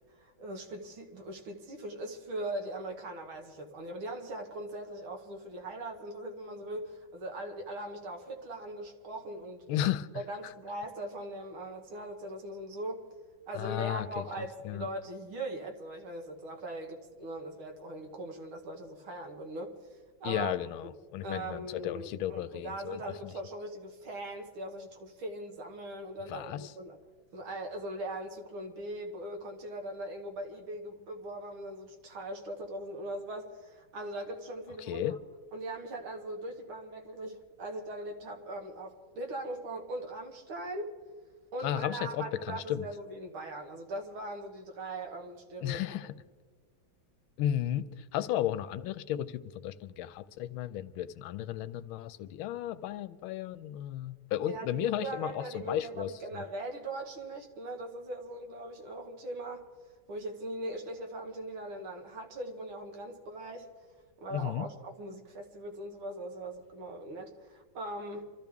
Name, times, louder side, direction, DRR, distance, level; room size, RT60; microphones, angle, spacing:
voice 1, 0.1-9.6 10.1-13.1 13.5-19.7 20.2-20.5 21.2-27.0 27.3-35.2 35.5-41.0 41.5-45.8 54.5-59.7 60.1-63.7 64.2-68.3, right 1 dB, 85° right, 3 dB, 2.5 m, -40 dB
voice 2, 9.7-10.5 13.5-14.2 14.6-14.9 20.2-23.3 26.3-26.7 34.8-35.2 41.6-42.9 45.6-46.1 47.4-56.4 64.3-64.7, left 11 dB, 90° left, 13 dB, 1.5 m, -34 dB
26.0 x 14.0 x 3.5 m, 1.5 s
omnidirectional pair, 2.2 m